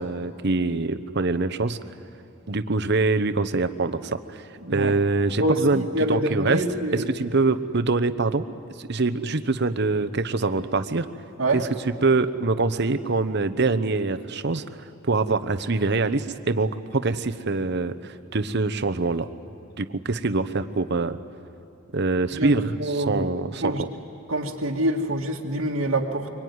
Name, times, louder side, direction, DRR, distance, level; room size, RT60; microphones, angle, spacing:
voice 1, 0.0-1.8 2.5-4.4 4.7-6.6 6.9-8.5 8.8-11.1 11.5-11.7 12.0-14.6 15.1-19.3 19.8-21.2 21.9-23.7, right 3 dB, 55° right, 11 dB, 0.9 m, -24 dB
voice 2, 4.6-4.9 5.4-7.1 11.4-11.6 22.3-23.2 23.6-23.8 24.3-26.3, right 1 dB, 80° right, -2 dB, 1.9 m, -26 dB
24.0 x 24.0 x 9.6 m, 2.7 s
head